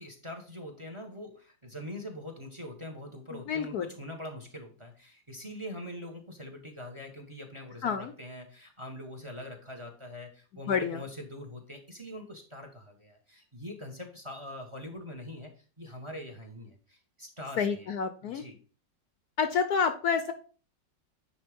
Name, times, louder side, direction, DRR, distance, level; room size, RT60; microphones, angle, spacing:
voice 1, 0.0-17.9 18.2-18.6, left 1 dB, 20° right, 4 dB, 1.2 m, -43 dB
voice 2, 3.3-3.9 7.8-8.1 10.7-11.0 17.6-18.4 19.4-20.3, left 6 dB, 70° left, 9 dB, 1.0 m, -29 dB
9.8 x 3.5 x 5.1 m, 0.38 s
omnidirectional pair, 2.0 m